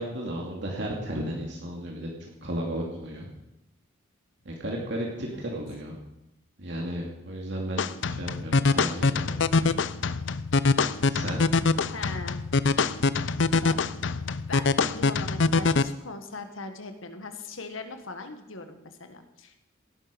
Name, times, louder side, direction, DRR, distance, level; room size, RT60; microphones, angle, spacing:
voice 1, 0.0-2.1 2.4-3.3 4.4-6.0 6.6-9.4 11.1-11.4, right 1 dB, 60° right, -1 dB, 2.6 m, -34 dB
sound 1, 7.8-15.8, left 4 dB, 65° left, 0.6 m, -24 dB
voice 2, 11.9-12.4 13.4-13.8 14.5-19.6, left 3 dB, 85° left, 7 dB, 1.8 m, -40 dB
17.0 x 11.5 x 5.3 m, 0.90 s
head